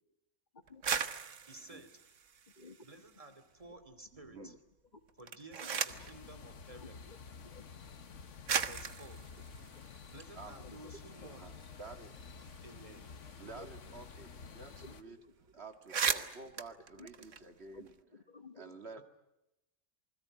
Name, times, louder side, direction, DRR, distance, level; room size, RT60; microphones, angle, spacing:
sound 1, 0.7-3.2 3.6-4.3 5.1-6.2 7.2-7.3 8.0-8.1 8.5-10.8 11.1-11.2 11.5-14.1 14.4-14.5 14.8-15.0 15.4-15.5 15.7-17.9, right 6 dB, 90° right, 1.6 m, -38 dB
voice 1, 1.4-1.9 2.8-4.5 5.2-7.0 8.6-9.2 10.1-11.5 12.6-13.1 19.0-19.1, right 2 dB, 30° right, 9 dB, 2.8 m, -53 dB
voice 2, 4.1-4.6 10.3-10.6 11.3-12.1 13.4-15.2 15.5-17.9 18.6-19.0, right 3 dB, 60° right, 7 dB, 2.0 m, -50 dB
voice 3, 5.6-6.1 6.8-7.6 10.6-10.9 11.2-11.3 12.1-12.2 13.5-13.7 14.8-15.1 16.0-16.5 17.0-17.3 17.7-18.8, left 3 dB, 40° left, 8 dB, 1.5 m, -55 dB
sound 2, 5.9-15.0, left 5 dB, 80° left, 1.6 m, -51 dB
28.0 x 21.0 x 9.1 m, 0.89 s
omnidirectional pair, 1.2 m